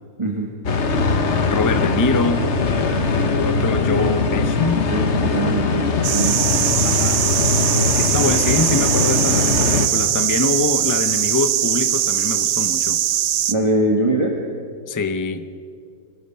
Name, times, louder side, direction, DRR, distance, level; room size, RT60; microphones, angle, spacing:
voice 1, 0.2-0.5 2.9-3.1 4.7-6.4 13.5-14.4, right 1 dB, 20° right, 0 dB, 1.5 m, -22 dB
sound 1, 0.6-9.9, left 4 dB, 50° left, 1.3 m, -21 dB
voice 2, 1.4-2.4 3.3-4.9 6.8-7.4 7.9-13.0 14.9-15.5, left 4 dB, 30° left, 9 dB, 0.3 m, -24 dB
sound 2, 6.0-13.5, right 11 dB, 85° right, 1.3 m, -21 dB
25.5 x 18.5 x 5.7 m, 2.3 s
omnidirectional pair, 1.7 m